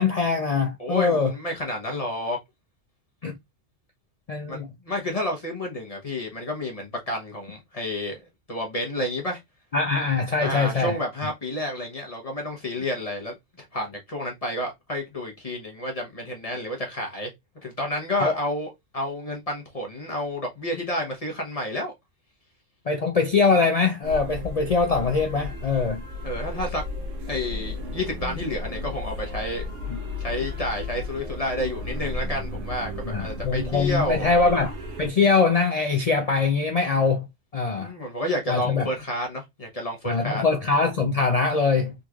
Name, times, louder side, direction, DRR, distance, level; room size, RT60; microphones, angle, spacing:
voice 1, 0.0-1.3 3.2-3.4 4.3-4.7 9.7-11.0 18.2-18.4 22.9-26.0 33.0-37.3 37.5-37.9 38.5-38.9 40.0-41.9, left 4 dB, 65° left, 0.3 m, -22 dB
voice 2, 0.8-2.4 4.5-8.2 8.5-9.4 10.4-17.3 17.6-21.9 26.2-26.8 27.3-29.6 30.2-34.2 37.8-40.4, left 1 dB, 35° left, 0.9 m, -30 dB
sound 1, 24.0-35.1, left 2 dB, 75° right, 1.4 m, -34 dB
3.8 x 3.0 x 2.4 m
omnidirectional pair, 1.3 m